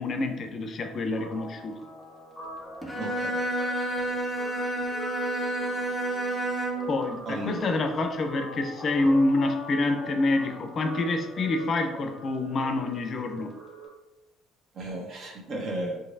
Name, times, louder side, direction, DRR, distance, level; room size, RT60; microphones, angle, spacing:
voice 1, 0.0-1.8 6.9-13.5, left 2 dB, 50° left, 6 dB, 0.4 m, -27 dB
Guitar, 1.2-13.9, equal, 15° left, 1.1 m, -42 dB
Bowed string instrument, 2.8-7.0, right 1 dB, 5° right, 0.6 m, -30 dB
voice 2, 3.0-3.3 7.3-7.8 14.7-16.0, right 1 dB, 55° right, 0 dB, 0.8 m, -34 dB
3.0 x 2.6 x 2.5 m, 0.98 s
supercardioid pair, 70°, 0 cm